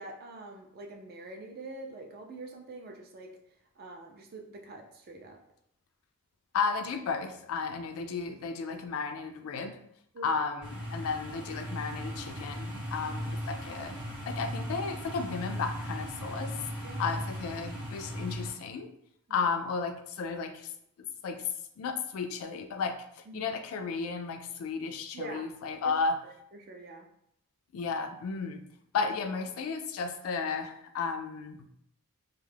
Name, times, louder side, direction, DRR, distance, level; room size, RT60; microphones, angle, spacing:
voice 1, 0.0-3.3 3.8-5.4 10.1-10.3 11.0-11.1 13.0-13.1 16.8-17.2 19.3-19.5 23.3-23.5 25.1-25.5 25.8-25.9 26.2-27.1, right 2 dB, 45° right, 2 dB, 0.4 m, -45 dB
voice 2, 6.5-9.8 10.2-14.0 14.3-16.5 16.8-18.9 19.3-20.7 21.0-21.4 21.8-26.2 27.7-28.6 28.9-31.6, left 5 dB, 70° left, 7 dB, 0.3 m, -33 dB
sound 1, 10.6-18.5, equal, 5° right, 0.6 m, -37 dB
2.2 x 2.0 x 3.2 m, 0.72 s
head